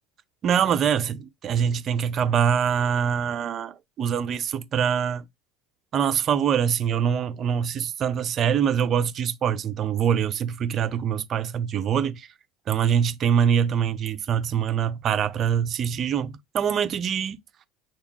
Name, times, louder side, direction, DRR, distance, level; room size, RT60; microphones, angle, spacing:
voice 1, 0.4-5.2 5.9-12.3 12.7-17.4, right 8 dB, 40° right, 0.5 m, -24 dB
3.0 x 2.2 x 3.5 m
supercardioid pair, 105°, 0 cm